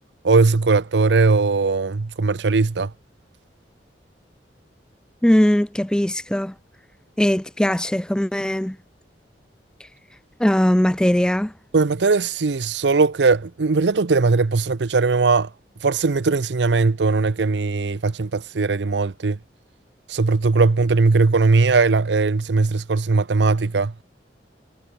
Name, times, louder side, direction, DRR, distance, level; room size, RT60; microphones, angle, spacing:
voice 1, 0.2-2.9 11.7-15.5 15.8-19.4 20.1-23.9, right 4 dB, 75° right, 0.7 m, -19 dB
voice 2, 5.2-6.5 7.2-8.8 10.4-11.5, equal, 5° left, 0.4 m, -19 dB
head